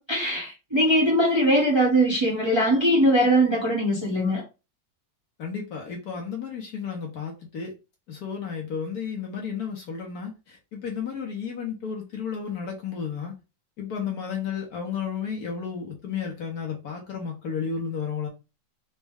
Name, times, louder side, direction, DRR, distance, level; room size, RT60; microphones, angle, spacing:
voice 1, 0.0-4.4, right 1 dB, 20° right, 0.9 m, -21 dB
voice 2, 5.4-7.7 8.1-13.4 13.8-18.3, left 6 dB, 60° left, 1.2 m, -32 dB
4.1 x 2.2 x 3.5 m
omnidirectional pair, 2.0 m